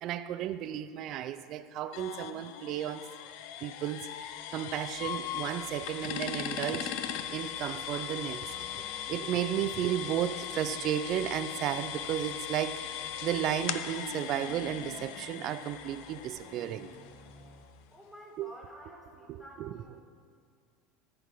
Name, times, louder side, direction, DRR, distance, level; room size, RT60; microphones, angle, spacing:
voice 1, 0.0-3.1 3.6-6.9 7.3-8.5 9.1-12.9 13.2-16.9 18.4-18.5 19.3-19.8, right 11 dB, 50° right, 12 dB, 0.4 m, -33 dB
sound 1, 1.9-17.6, left 10 dB, 65° left, 0.5 m, -39 dB
sound 2, 8.2-17.7, right 1 dB, 10° right, 1.1 m, -55 dB
voice 2, 17.9-20.0, equal, 5° left, -2 dB, 2.0 m, -51 dB
13.0 x 4.5 x 5.4 m, 2.1 s
supercardioid pair, 120°, 0 cm